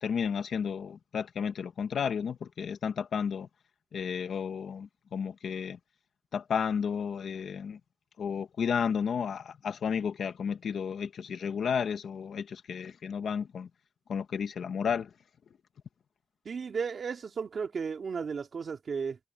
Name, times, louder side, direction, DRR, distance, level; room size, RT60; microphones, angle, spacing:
voice 1, 0.0-3.5 3.9-5.8 6.3-7.8 8.2-13.7 14.1-15.1, left 7 dB, 80° left, 1.1 m, -32 dB
voice 2, 16.5-19.2, right 5 dB, 55° right, 2.3 m, -34 dB
wide cardioid pair, 150°, 0 cm